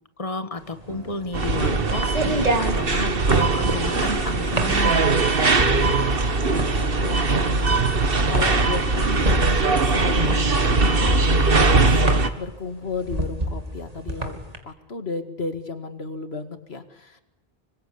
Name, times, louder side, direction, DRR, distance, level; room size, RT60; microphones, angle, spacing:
voice 1, 0.2-5.3, left 2 dB, 35° left, 9 dB, 1.8 m, -32 dB
sound 1, 0.7-14.6, right 1 dB, 40° right, 3.1 m, -29 dB
sound 2, 0.9-3.2 3.6-5.9, right 2 dB, 80° right, 4.7 m, -44 dB
sound 3, 1.3-12.3, right 3 dB, 65° right, 1.8 m, -20 dB
voice 2, 5.7-14.4 14.6-17.2, left 4 dB, 90° left, 9 dB, 2.3 m, -34 dB
26.5 x 24.5 x 8.6 m, 0.94 s
omnidirectional pair, 1.0 m